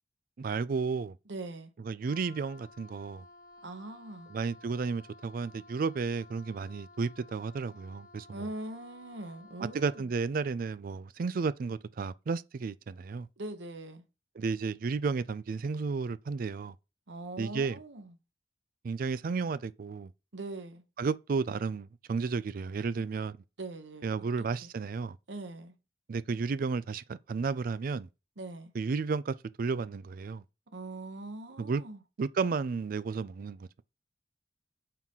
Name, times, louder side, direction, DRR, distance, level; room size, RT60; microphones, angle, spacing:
voice 1, 0.4-1.2 1.8-3.2 4.3-8.5 9.7-13.3 14.4-16.7 17.4-17.8 18.8-20.1 21.0-23.4 24.0-25.2 26.1-28.1 28.7-30.4 31.6-31.8 32.2-33.7, right 4 dB, 50° right, 0.4 m, -32 dB
voice 2, 1.3-1.7 3.6-4.3 8.3-10.1 13.4-14.0 17.1-18.1 20.3-20.8 23.6-24.1 24.6-24.7 25.3-25.7 28.4-28.7 30.7-32.0, right 2 dB, 85° right, 1.1 m, -41 dB
Wind instrument woodwind instrument, 2.0-10.2, left 3 dB, 55° left, 1.1 m, -55 dB
4.5 x 3.7 x 5.5 m
head